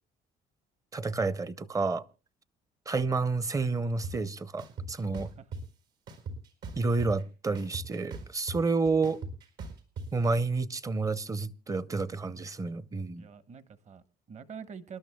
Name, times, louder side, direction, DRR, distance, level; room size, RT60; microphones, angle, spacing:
voice 1, 0.9-2.0 2.9-5.3 6.8-9.2 10.1-13.2, right 3 dB, 20° right, 0.6 m, -30 dB
sound 1, 4.0-4.1 4.6-5.6 6.1-7.2 7.5-10.1, right 3 dB, 80° right, 4.6 m, -39 dB
voice 2, 5.2-5.5 13.1-15.0, right 6 dB, 45° right, 1.1 m, -46 dB
28.5 x 12.0 x 2.2 m
cardioid pair, 110°, 17 cm